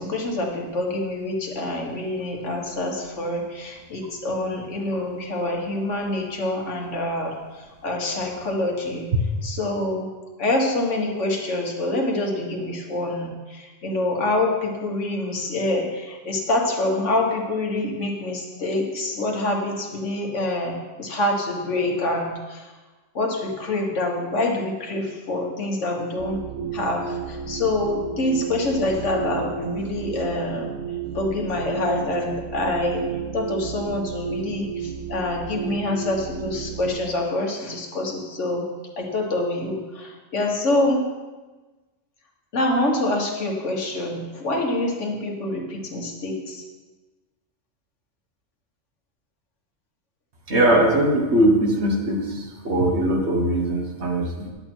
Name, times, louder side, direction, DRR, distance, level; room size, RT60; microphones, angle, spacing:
voice 1, 0.0-10.1 10.4-22.8 23.1-26.4 26.7-38.7 39.0-41.0 42.5-46.6, left 2 dB, 75° left, 1 dB, 1.8 m, -26 dB
sound 1, 26.2-37.1, right 6 dB, 80° right, 1.1 m, -33 dB
voice 2, 50.5-54.5, right 1 dB, 60° right, 1 dB, 1.6 m, -20 dB
10.5 x 7.9 x 4.4 m, 1.2 s
omnidirectional pair, 1.3 m